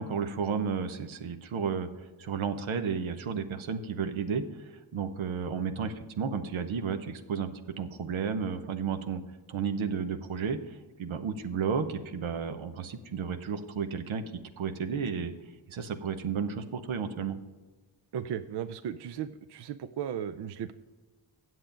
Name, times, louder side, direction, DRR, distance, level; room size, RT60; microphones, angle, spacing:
voice 1, 0.0-1.9 2.2-9.2 9.5-14.3 14.6-15.3 15.7-17.4, right 6 dB, 85° right, 9 dB, 0.9 m, -32 dB
voice 2, 18.1-20.7, right 9 dB, 60° right, 12 dB, 0.5 m, -36 dB
8.0 x 7.5 x 5.1 m, 1.3 s
cardioid pair, 60°, 47 cm